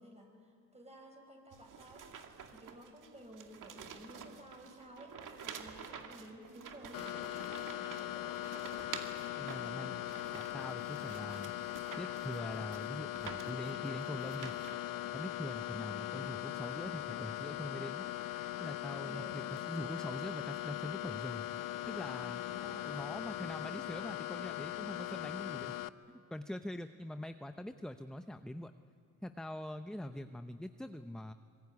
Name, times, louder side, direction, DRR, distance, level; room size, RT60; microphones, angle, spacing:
voice 1, 0.0-2.1 2.5-8.4 11.2-11.5 15.8-16.2 19.0-19.4 22.5-23.1 30.1-30.2, right 1 dB, 20° right, 3 dB, 6.3 m, -54 dB
sound 1, 1.5-14.8, right 7 dB, 60° right, 2.3 m, -50 dB
sound 2, 6.9-25.9, left 14 dB, 70° left, 0.8 m, -40 dB
voice 2, 9.4-10.0 10.3-11.5 12.0-14.5 15.1-18.1 18.6-21.5 21.9-22.4 22.8-25.8 26.3-28.7 29.2-31.3, left 1 dB, ahead, 9 dB, 0.7 m, -43 dB
25.0 x 22.0 x 9.6 m, 2.6 s
cardioid pair, 80°, 35 cm